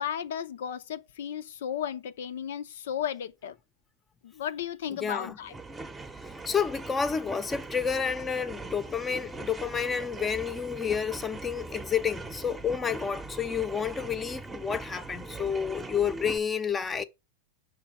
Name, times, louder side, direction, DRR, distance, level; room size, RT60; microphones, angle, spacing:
voice 1, 0.0-3.6 4.2-5.6, left 9 dB, 75° left, 0.6 m, -34 dB
voice 2, 5.0-5.3 6.5-17.0, left 7 dB, 20° left, 0.7 m, -30 dB
sound 1, 5.4-16.4, right 3 dB, 10° right, 0.8 m, -41 dB
5.9 x 3.9 x 6.0 m
hypercardioid pair, 120°, 0 cm